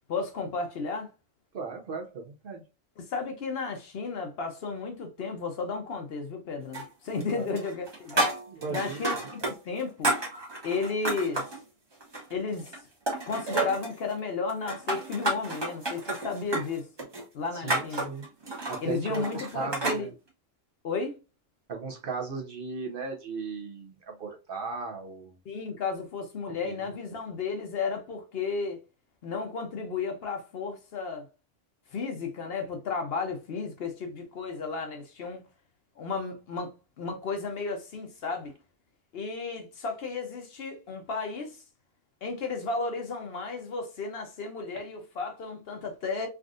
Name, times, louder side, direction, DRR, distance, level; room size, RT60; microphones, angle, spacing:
voice 1, 0.1-1.1 3.0-8.3 8.7-10.1 10.6-11.5 12.3-12.7 13.3-16.8 17.3-18.1 18.8-20.1 20.8-21.2 25.4-28.8 29.2-31.3 31.9-35.4 36.0-38.5 39.1-41.6 42.2-46.3, left 4 dB, 60° left, 0.8 m, -33 dB
voice 2, 1.5-2.6 7.3-7.5 8.5-9.0 17.5-18.2 18.7-20.1 21.7-25.3 26.6-26.7, right 4 dB, 55° right, 0.7 m, -36 dB
sound 1, 6.7-7.3 7.6-9.5 9.8-11.6 12.0-12.8 13.1-13.9 14.5-20.0, right 1 dB, 25° right, 0.8 m, -31 dB
3.5 x 2.4 x 2.4 m
omnidirectional pair, 1.3 m